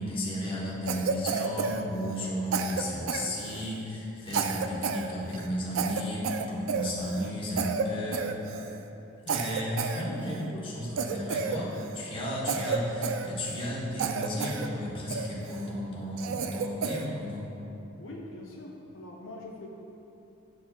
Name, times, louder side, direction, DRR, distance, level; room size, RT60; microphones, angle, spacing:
voice 1, 0.0-8.3 9.2-17.5, equal, 25° left, -6 dB, 1.0 m, -34 dB
Cough, 0.9-2.3 2.5-3.8 4.3-5.1 5.3-5.5 5.7-7.3 7.6-7.9 8.1-8.8 9.3-10.5 11.0-12.0 12.5-13.7 14.0-14.7 15.1-15.6 16.2-17.1, right 5 dB, 70° right, 0.3 m, -31 dB
voice 2, 18.0-19.7, left 2 dB, 70° left, -2 dB, 0.6 m, -43 dB
9.3 x 4.4 x 2.3 m, 2.9 s
head